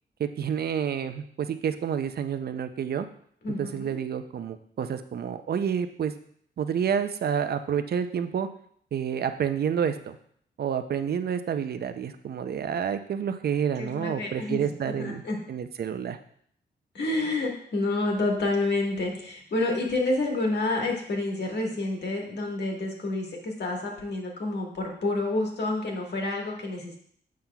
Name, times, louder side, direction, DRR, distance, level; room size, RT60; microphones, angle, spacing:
voice 1, 0.2-3.1 3.6-6.1 6.6-8.5 8.9-10.2 10.6-15.2 15.5-16.2, right 8 dB, 60° right, 10 dB, 0.5 m, -29 dB
voice 2, 3.4-4.0 13.8-15.4 16.9-27.0, left 2 dB, 65° left, 0 dB, 1.5 m, -29 dB
7.4 x 5.7 x 2.3 m, 0.64 s
cardioid pair, 80°, 19 cm